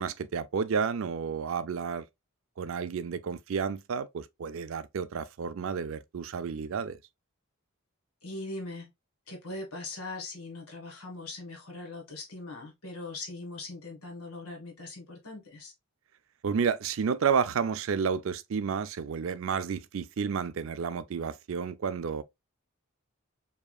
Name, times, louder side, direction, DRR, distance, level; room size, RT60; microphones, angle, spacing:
voice 1, 0.0-2.0 2.6-7.0 16.4-22.2, right 6 dB, 65° right, 0.4 m, -31 dB
voice 2, 8.2-8.9 9.3-15.7, left 2 dB, 80° left, 1.7 m, -41 dB
4.8 x 2.8 x 2.3 m
head